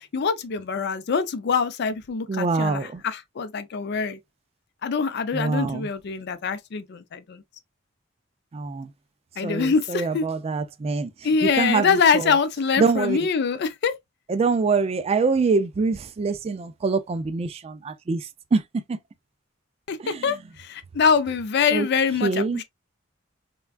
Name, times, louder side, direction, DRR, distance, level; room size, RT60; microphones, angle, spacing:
voice 1, 0.1-4.2 4.8-7.4 9.4-10.3 11.2-13.9 19.9-22.6, left 5 dB, 55° left, 0.4 m, -24 dB
voice 2, 2.3-3.0 5.3-5.8 8.5-8.9 9.4-11.1 11.6-11.9 12.8-13.2 14.3-18.2 18.5-18.6 20.0-20.2 21.7-21.8 22.2-22.6, right 4 dB, 30° right, 0.3 m, -24 dB
3.4 x 2.2 x 2.3 m
head